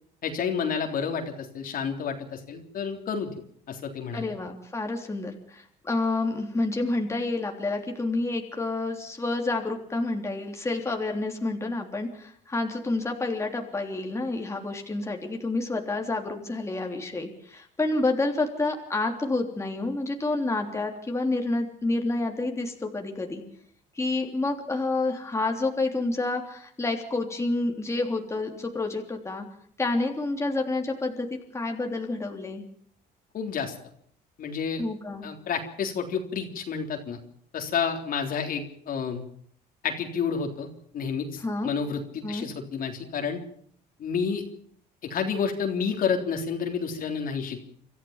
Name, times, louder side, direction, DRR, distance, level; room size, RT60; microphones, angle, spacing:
voice 1, 0.2-3.3 3.7-4.3 33.3-33.8 34.4-34.8 35.2-37.2 37.5-39.2 39.8-40.7 40.9-43.4 44.0-44.4 45.0-47.6, left 6 dB, 55° left, 3 dB, 3.6 m, -30 dB
voice 2, 4.1-23.4 24.0-29.5 29.8-31.3 31.5-32.6 34.8-35.3 41.4-41.7 42.2-42.5, left 2 dB, 15° left, 2 dB, 3.3 m, -29 dB
26.0 x 14.0 x 7.4 m, 0.63 s
cardioid pair, 110°, 17 cm